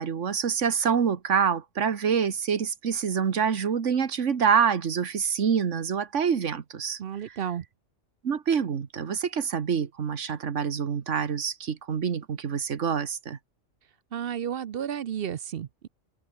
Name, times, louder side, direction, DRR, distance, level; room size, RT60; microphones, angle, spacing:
voice 1, 0.0-7.0 8.2-13.4, right 7 dB, 80° right, 1.7 m, -26 dB
voice 2, 7.0-7.6 14.1-15.9, right 9 dB, 60° right, 0.8 m, -32 dB
open air
omnidirectional pair, 1.2 m